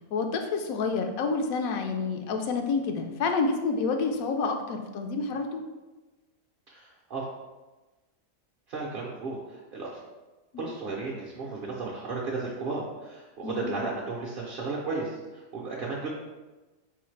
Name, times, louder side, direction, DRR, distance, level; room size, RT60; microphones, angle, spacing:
voice 1, 0.1-5.6 10.5-10.7 13.4-13.8, left 4 dB, 85° left, 5 dB, 1.0 m, -28 dB
voice 2, 6.7-7.2 8.7-9.9 10.6-16.1, right 3 dB, 50° right, -3 dB, 0.7 m, -34 dB
4.1 x 3.9 x 3.2 m, 1.2 s
omnidirectional pair, 1.4 m